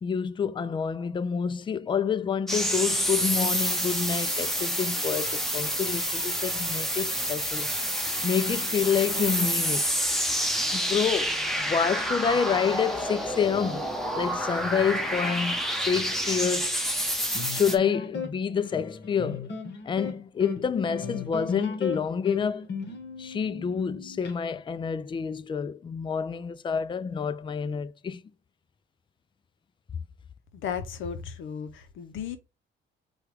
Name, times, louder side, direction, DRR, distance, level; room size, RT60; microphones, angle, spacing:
voice 1, 0.0-7.7 8.2-9.9 10.7-13.9 14.1-15.6 15.9-16.8 17.5-19.5 19.8-22.6 23.2-28.2, left 6 dB, 25° left, 0.3 m, -28 dB
sound 1, 2.5-17.8, equal, ahead, 0.9 m, -28 dB
sound 2, 17.3-24.3, left 5 dB, 60° left, 1.1 m, -36 dB
voice 2, 30.5-32.4, left 7 dB, 80° left, 0.6 m, -35 dB
4.7 x 2.3 x 4.7 m
cardioid pair, 90°, 20 cm